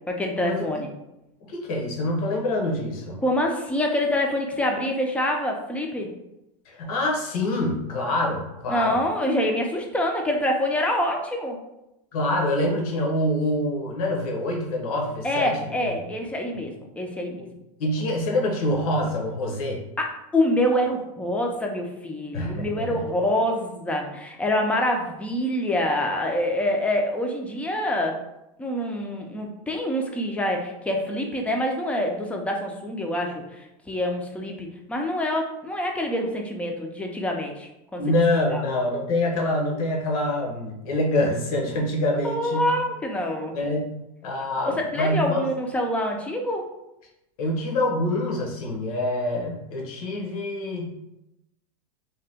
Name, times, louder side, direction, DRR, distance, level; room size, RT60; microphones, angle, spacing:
voice 1, 0.1-0.9 3.2-6.1 8.7-11.6 15.2-17.4 20.0-28.2 28.6-38.2 38.5-38.6 42.2-43.6 44.7-46.7, left 1 dB, 5° left, 1 dB, 0.4 m, -26 dB
voice 2, 1.4-3.2 6.7-9.0 12.1-16.0 17.8-19.8 22.3-23.0 38.0-42.7 43.5-43.9 44.2-45.4 47.4-50.9, left 1 dB, 75° left, -1 dB, 0.9 m, -26 dB
2.8 x 2.2 x 3.4 m, 0.89 s
supercardioid pair, 130°, 19 cm